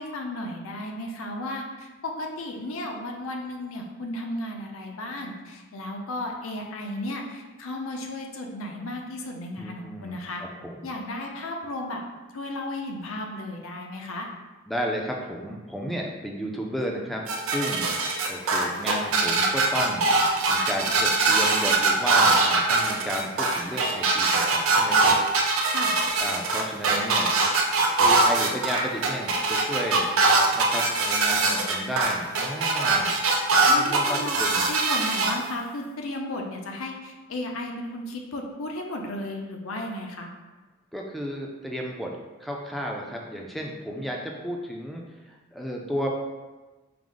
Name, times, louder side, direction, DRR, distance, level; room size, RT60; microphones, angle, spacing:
voice 1, 0.0-10.4 10.8-12.0 12.3-14.3 25.6-26.0 33.7-34.4 34.7-40.3, left 1 dB, 85° left, 2 dB, 0.6 m, -34 dB
voice 2, 9.6-10.2 10.6-10.9 14.7-20.1 20.5-25.1 26.2-27.4 28.0-30.1 30.5-33.2 33.8-34.7 40.9-46.1, equal, ahead, -1 dB, 0.4 m, -33 dB
sound 1, 17.3-35.3, right 3 dB, 80° right, 0.6 m, -22 dB
4.7 x 2.1 x 3.8 m, 1.2 s
head